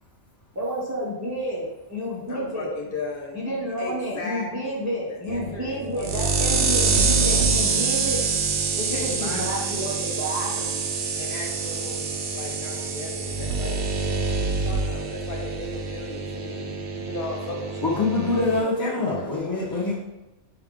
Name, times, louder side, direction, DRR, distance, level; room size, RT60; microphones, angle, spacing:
voice 1, 0.6-2.7 3.3-8.3 8.7-10.5, equal, 20° right, 0.4 m, -30 dB
voice 2, 2.3-6.8 7.2-7.4 8.7-10.2 10.4-10.8 11.2-13.8 14.4-19.2, left 3 dB, 50° left, 1.0 m, -37 dB
sound 1, 5.3-18.6, right 4 dB, 60° right, 0.7 m, -26 dB
voice 3, 17.8-20.0, left 3 dB, 20° left, 0.6 m, -24 dB
5.8 x 2.4 x 3.6 m
omnidirectional pair, 1.2 m